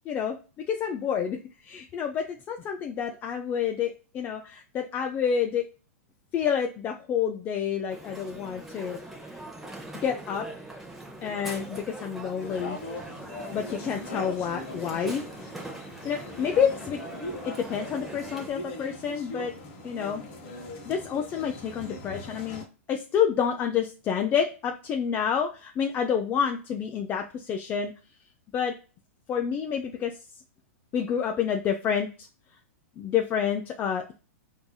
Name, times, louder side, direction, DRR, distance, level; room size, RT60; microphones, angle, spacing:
voice 1, 0.1-0.4 0.7-5.6 6.3-9.0 9.3-9.4 10.0-10.5 11.2-12.8 13.5-15.2 15.5-15.6 16.0-17.0 17.4-19.5 19.8-20.2 20.9-27.9 28.5-28.7 29.3-30.1 30.9-32.3 33.0-34.1, left 7 dB, 25° left, 3 dB, 0.3 m, -28 dB
Crowd, 7.9-18.5, right 2 dB, 5° right, 0.7 m, -42 dB
sound 1, 12.4-22.6, left 2 dB, 45° left, 1.0 m, -40 dB
4.6 x 2.6 x 2.2 m, 0.35 s
hypercardioid pair, 115°, 8 cm